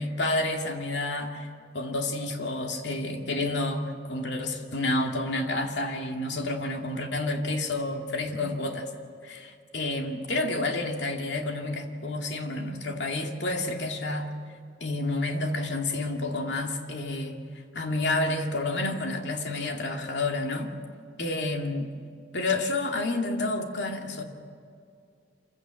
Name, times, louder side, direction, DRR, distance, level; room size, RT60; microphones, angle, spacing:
voice 1, 0.0-1.5 1.7-8.9 9.2-14.3 14.8-17.4 17.7-20.8 21.2-21.9 22.3-24.2, left 2 dB, 85° left, 3 dB, 2.3 m, -29 dB
26.5 x 15.5 x 7.8 m, 2.4 s
head